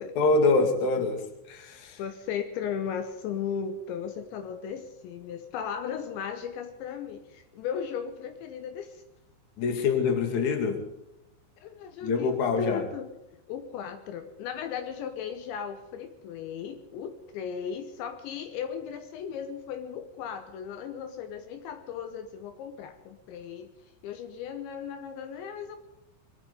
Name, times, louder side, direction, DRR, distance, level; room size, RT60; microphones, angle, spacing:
voice 1, 0.2-2.0 9.6-10.8 12.0-12.8, left 4 dB, 50° left, 6 dB, 3.0 m, -25 dB
voice 2, 2.0-9.0 11.6-13.1 13.5-23.7 24.0-25.8, left 7 dB, 80° left, 8 dB, 3.2 m, -36 dB
22.5 x 12.0 x 5.3 m, 0.88 s
omnidirectional pair, 5.4 m